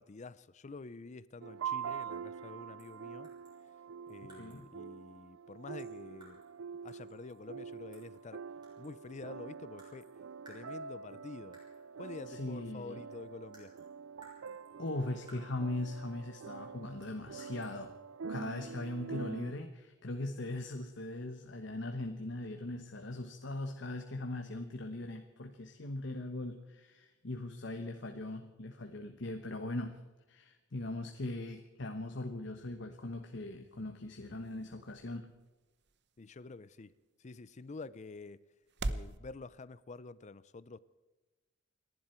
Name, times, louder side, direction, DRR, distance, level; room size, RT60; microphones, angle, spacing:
voice 1, 0.0-3.3 4.1-6.4 6.8-8.4 8.8-10.1 10.5-11.6 12.0-13.7 36.2-36.9 37.2-38.5 38.9-40.8, left 3 dB, 35° left, 0.5 m, -48 dB
sound 1, 1.4-19.5, right 6 dB, 75° right, 0.4 m, -45 dB
sound 2, 2.8-3.0 3.2-4.7 5.8-6.6 6.9-8.3 8.6-9.2 9.8-10.2 10.5-11.1 11.5-11.9 12.8-12.9 13.1-15.8 17.0-17.7, right 1 dB, 25° right, 6.5 m, -61 dB
voice 2, 12.3-13.0 14.8-17.9 18.3-30.0 30.3-35.3, left 2 dB, 65° left, 1.1 m, -40 dB
sound 3, 32.9-39.2, right 2 dB, 60° right, 0.9 m, -46 dB
29.5 x 11.0 x 4.5 m
head